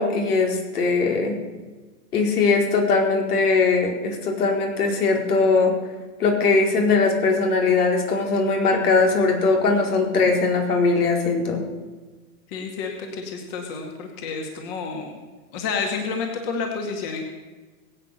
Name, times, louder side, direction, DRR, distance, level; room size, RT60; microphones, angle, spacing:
voice 1, 0.0-1.4 2.1-5.7 6.2-11.6, left 4 dB, 85° left, 2 dB, 4.7 m, -20 dB
voice 2, 12.5-15.1 15.5-17.2, left 5 dB, 40° left, 2 dB, 2.3 m, -30 dB
21.5 x 8.8 x 6.7 m, 1.3 s
hypercardioid pair, 155°, 45 cm